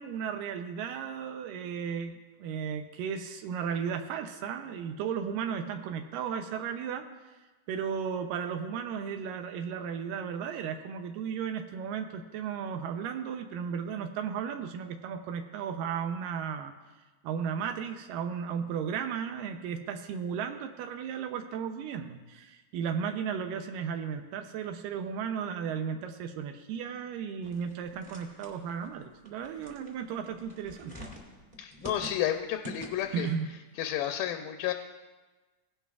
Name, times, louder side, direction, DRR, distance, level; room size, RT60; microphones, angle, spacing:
voice 1, 0.0-7.1 7.7-16.7 17.2-31.0 33.1-33.5, right 7 dB, 85° right, 6 dB, 2.3 m, -35 dB
sound 1, 27.4-33.3, equal, 15° right, 1.3 m, -46 dB
voice 2, 31.6-33.3 33.8-34.7, left 11 dB, 80° left, 6 dB, 2.1 m, -31 dB
17.5 x 11.0 x 2.4 m, 1.2 s
omnidirectional pair, 3.9 m